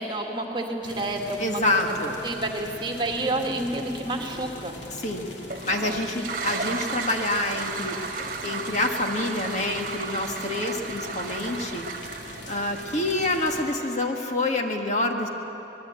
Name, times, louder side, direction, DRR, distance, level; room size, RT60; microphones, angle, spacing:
voice 1, 0.0-1.8 2.2-4.8, right 2 dB, 25° right, 2 dB, 2.1 m, -29 dB
sound 1, 0.8-13.6, left 1 dB, 80° left, 3.0 m, -41 dB
voice 2, 1.4-2.1 4.9-5.3 5.6-11.9 12.5-15.3, left 2 dB, 40° left, 3 dB, 1.7 m, -27 dB
Toilet flush, 5.4-14.3, right 4 dB, 50° right, 1.7 m, -34 dB
25.5 x 20.0 x 8.9 m, 3.0 s
head